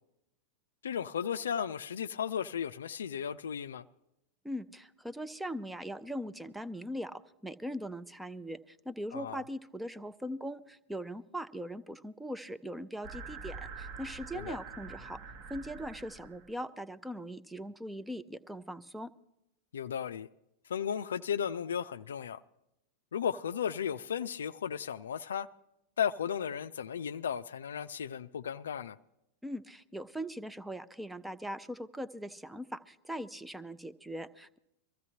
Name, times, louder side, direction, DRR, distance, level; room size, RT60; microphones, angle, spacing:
voice 1, 0.8-3.8 9.1-9.4 14.3-14.6 19.7-20.3 20.7-22.4 23.1-25.5 26.0-29.0, left 8 dB, 65° left, 0.4 m, -35 dB
voice 2, 4.4-15.2 15.5-19.1 29.4-34.6, equal, 5° right, 0.5 m, -40 dB
sound 1, 13.0-16.5, right 5 dB, 45° right, 1.1 m, -45 dB
23.0 x 14.5 x 2.8 m
figure-of-eight pair, 90°, 0 cm